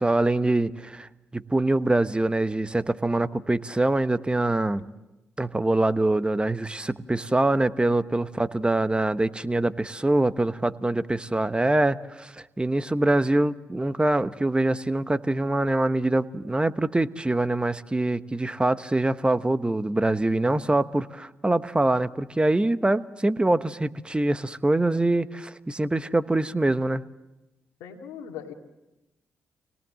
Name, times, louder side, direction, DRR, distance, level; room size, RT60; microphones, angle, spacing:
voice 1, 0.0-4.8 5.4-27.0, right 2 dB, 15° right, 12 dB, 1.1 m, -24 dB
voice 2, 27.8-28.5, left 8 dB, 80° left, 2 dB, 2.2 m, -39 dB
25.0 x 18.5 x 7.7 m, 1.0 s
hypercardioid pair, 40°, 6 cm